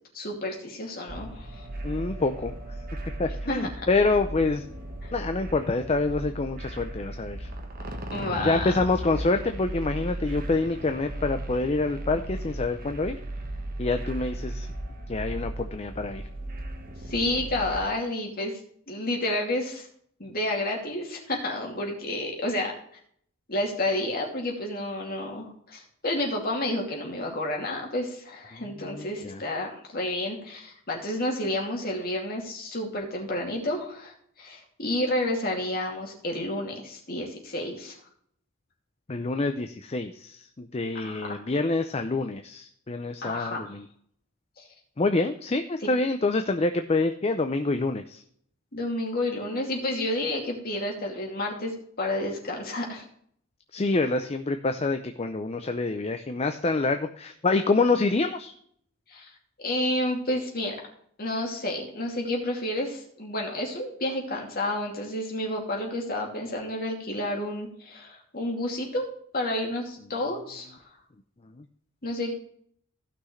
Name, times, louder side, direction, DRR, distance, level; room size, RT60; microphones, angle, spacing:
voice 1, 0.1-1.7 3.5-3.7 5.0-5.1 8.1-8.7 17.1-18.5 18.9-19.9 20.2-22.7 23.5-38.0 40.9-41.4 43.2-43.6 44.6-44.7 48.7-51.7 52.0-53.0 59.1-59.3 59.6-60.8 61.2-69.1 69.3-70.8 72.0-72.3, left 1 dB, 45° left, 0 dB, 2.7 m, -30 dB
sound 1, 1.1-17.8, right 1 dB, 45° right, 1.4 m, -36 dB
voice 2, 1.8-2.5 3.2-4.6 5.1-7.5 8.4-13.2 13.8-14.7 15.1-16.2 28.5-29.4 39.1-43.8 45.0-48.2 53.7-58.5 71.6-71.7, left 3 dB, 30° left, 7 dB, 0.6 m, -27 dB
15.5 x 6.0 x 3.2 m, 0.64 s
head